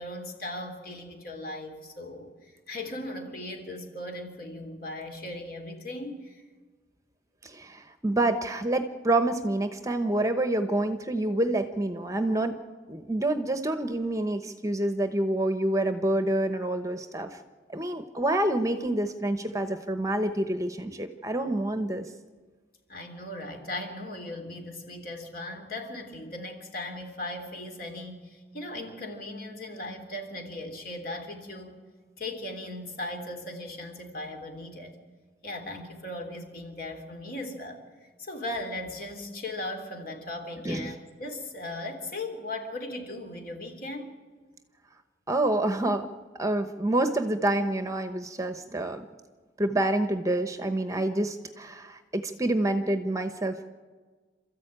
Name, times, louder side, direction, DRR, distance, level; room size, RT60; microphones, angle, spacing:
voice 1, 0.0-6.4 22.9-31.8 32.2-35.0 35.4-44.2, left 1 dB, 50° left, 4 dB, 3.5 m, -38 dB
voice 2, 7.4-12.6 12.9-17.4 17.7-22.0 40.6-40.9 45.3-46.1 46.4-49.1 49.6-53.6, right 1 dB, 20° right, 8 dB, 1.0 m, -27 dB
28.0 x 14.0 x 9.0 m, 1.4 s
head